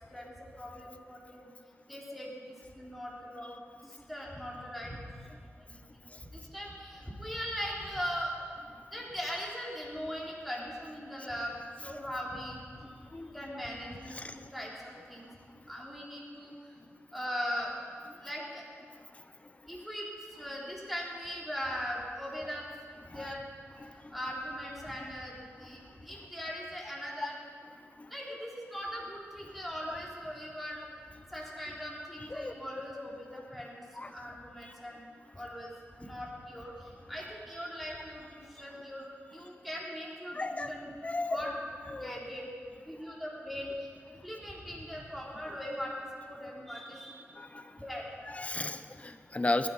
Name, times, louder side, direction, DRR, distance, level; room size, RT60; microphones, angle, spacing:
voice 1, 0.1-1.5 1.9-5.1 5.6-8.3 8.9-11.6 11.8-12.9 13.3-15.3 15.7-16.5 17.1-17.7 18.2-18.6 19.7-22.7 23.1-23.4 24.1-27.4 28.1-30.9 31.3-33.8 34.1-35.1 35.3-35.7 36.0-40.9 41.3-41.6 42.0-42.5 42.9-47.2 47.8-48.1, equal, ahead, -4 dB, 3.7 m, -40 dB
voice 2, 40.3-40.7 41.0-41.4 41.9-42.2 47.4-47.7 48.3-49.7, left 2 dB, 30° left, 10 dB, 0.8 m, -35 dB
20.5 x 12.0 x 5.6 m, 2.1 s
wide cardioid pair, 125°, 5 cm